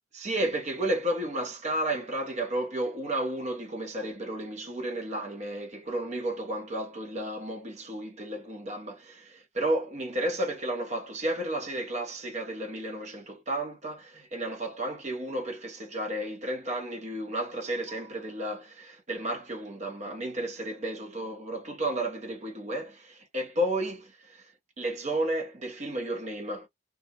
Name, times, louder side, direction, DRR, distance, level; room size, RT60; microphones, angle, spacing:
voice 1, 0.2-26.7, right 1 dB, 35° right, 0.8 m, -32 dB
2.3 x 2.1 x 2.8 m
head